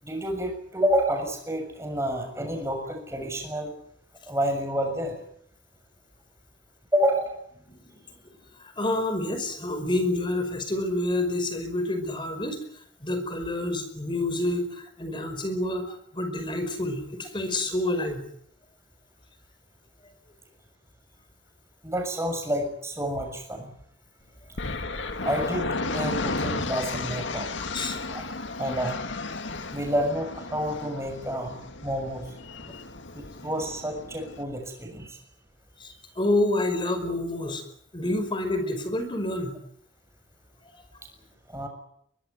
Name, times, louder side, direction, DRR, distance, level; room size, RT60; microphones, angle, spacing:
voice 1, 0.0-3.7 4.3-5.1 6.9-7.4 21.8-23.7 25.2-27.5 28.1-28.2 28.6-29.0 29.7-31.6 31.8-32.2 33.1-35.2 41.5-41.7, equal, 15° right, 4 dB, 6.8 m, -29 dB
voice 2, 8.6-12.6 13.0-18.2 27.7-28.0 35.8-37.6 37.9-39.6, left 1 dB, 25° left, 9 dB, 5.2 m, -28 dB
sound 1, 24.6-34.4, left 3 dB, 75° left, 2.1 m, -33 dB
23.0 x 20.5 x 9.6 m, 0.70 s
head